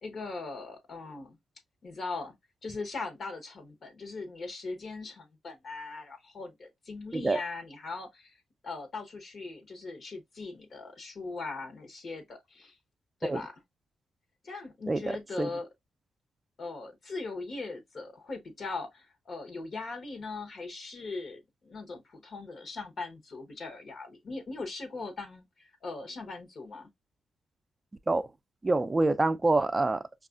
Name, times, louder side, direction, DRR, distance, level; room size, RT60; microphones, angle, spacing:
voice 1, 0.0-1.4 1.8-2.3 2.6-8.4 8.6-12.8 13.2-13.6 14.4-15.7 16.6-26.9, left 3 dB, 55° left, 1.0 m, -40 dB
voice 2, 14.9-15.5 28.1-28.3 28.6-30.0, right 2 dB, 25° right, 0.4 m, -26 dB
5.2 x 2.4 x 2.4 m
cardioid pair, 80°, 0 cm